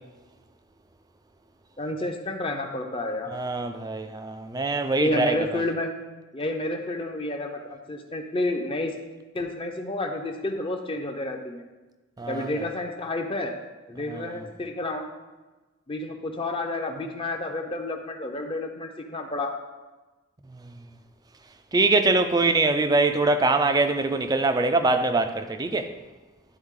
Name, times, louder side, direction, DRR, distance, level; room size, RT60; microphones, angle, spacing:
voice 1, 1.8-3.3 4.9-5.9 6.3-8.9 9.3-11.6 12.3-13.5 13.9-15.1 15.9-19.5, left 2 dB, 25° left, 0.6 m, -30 dB
voice 2, 3.3-5.6 12.2-12.6 14.1-14.4 20.5-20.6 21.7-25.9, right 3 dB, 20° right, 0.3 m, -23 dB
11.0 x 3.9 x 3.7 m
head